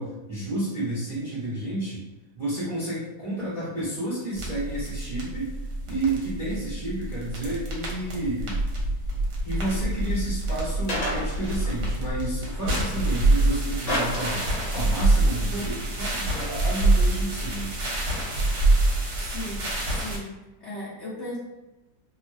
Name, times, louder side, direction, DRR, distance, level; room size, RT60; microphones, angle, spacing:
voice 1, 0.0-2.0 2.3-5.5 5.9-8.6 9.4-14.4 14.7-17.7, right 1 dB, 20° right, -11 dB, 0.9 m, -31 dB
sound 1, 4.3-20.2, right 2 dB, 65° right, 1.2 m, -26 dB
sound 2, 10.9-11.9 13.9-15.0, equal, 60° left, 0.9 m, -30 dB
voice 2, 19.2-20.3 20.6-21.4, left 1 dB, 80° left, -9 dB, 0.6 m, -37 dB
3.0 x 2.0 x 2.5 m, 1.0 s
omnidirectional pair, 2.0 m